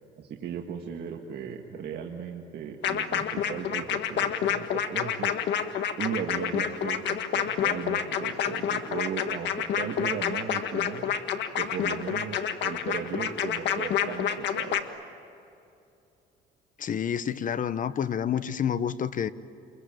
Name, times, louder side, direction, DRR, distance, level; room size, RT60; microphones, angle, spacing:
voice 1, 0.2-5.4 6.0-11.1 11.6-14.8, right 7 dB, 55° right, 1.9 m, -36 dB
sound 1, 2.8-14.8, left 9 dB, 65° left, 1.6 m, -28 dB
voice 2, 16.8-19.3, left 8 dB, 45° left, 1.0 m, -28 dB
28.0 x 22.0 x 9.2 m
cardioid pair, 110°, 20 cm